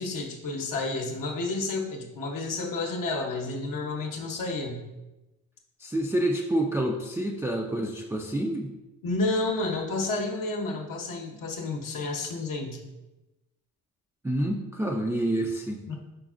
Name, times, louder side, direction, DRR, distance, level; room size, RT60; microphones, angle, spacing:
voice 1, 0.0-4.8 9.0-12.8 15.9-16.0, left 3 dB, 65° left, 1 dB, 0.8 m, -30 dB
voice 2, 5.8-8.7 14.2-15.9, right 1 dB, 10° right, -1 dB, 0.3 m, -28 dB
5.0 x 4.0 x 2.4 m, 1.0 s
supercardioid pair, 65°, 36 cm